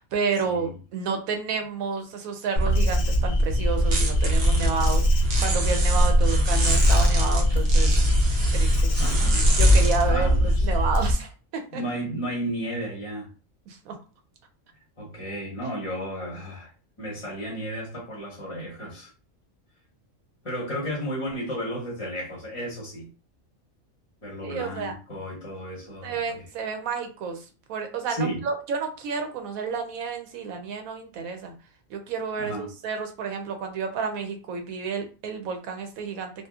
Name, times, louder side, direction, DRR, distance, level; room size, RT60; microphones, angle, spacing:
voice 1, 0.0-8.0 8.5-8.9 9.6-11.8 13.7-14.0 24.4-24.9 26.0-27.4 27.7-31.5 31.9-36.3, right 5 dB, 90° right, 5 dB, 1.0 m, -30 dB
sound 1, 2.6-11.1, equal, 60° right, 0.9 m, -21 dB
Insect, 2.7-11.1, right 1 dB, 65° left, 0.7 m, -28 dB
voice 2, 9.0-9.5 10.0-10.7 11.7-13.3 15.0-16.7 17.0-19.1 20.4-23.1 24.2-26.5 28.1-28.5 32.4-32.7, equal, 30° left, -4 dB, 0.8 m, -33 dB
2.9 x 2.3 x 2.3 m, 0.35 s
omnidirectional pair, 1.4 m